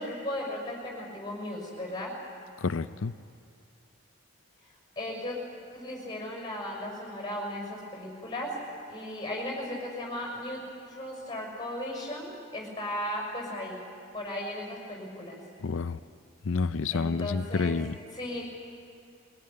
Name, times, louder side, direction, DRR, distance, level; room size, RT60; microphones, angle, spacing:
voice 1, 0.0-2.1 5.0-5.4 5.7-8.6 8.9-10.6 10.9-13.8 14.1-15.4 16.9-17.8 18.1-18.4, left 1 dB, 20° left, -1 dB, 6.1 m, -36 dB
voice 2, 2.6-3.1 15.6-16.0 16.4-18.0, left 4 dB, 65° left, 12 dB, 0.5 m, -29 dB
23.0 x 17.0 x 9.8 m, 2.5 s
head